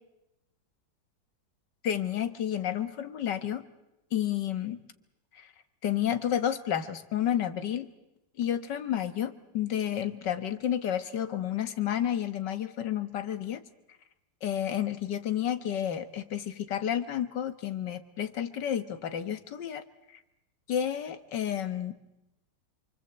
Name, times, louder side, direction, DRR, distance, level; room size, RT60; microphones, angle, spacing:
voice 1, 1.8-3.7 4.1-4.8 5.3-5.5 5.8-7.9 8.4-13.6 14.4-20.2 20.7-22.0, left 10 dB, 70° left, 10 dB, 2.0 m, -31 dB
28.0 x 24.5 x 8.1 m, 0.92 s
omnidirectional pair, 2.0 m